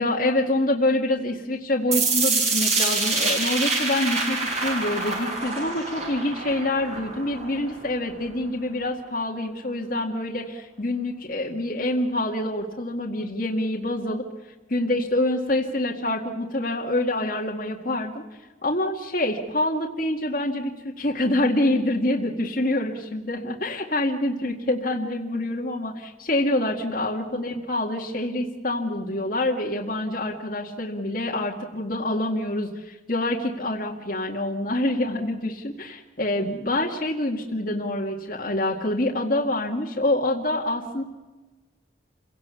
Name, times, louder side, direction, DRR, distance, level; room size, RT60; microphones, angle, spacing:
voice 1, 0.0-14.2 14.7-18.2 18.6-41.0, left 1 dB, 45° left, -1 dB, 2.1 m, -26 dB
sound 1, 1.9-7.9, right 3 dB, 35° right, 5.9 m, -26 dB
28.5 x 17.5 x 7.1 m, 1.2 s
head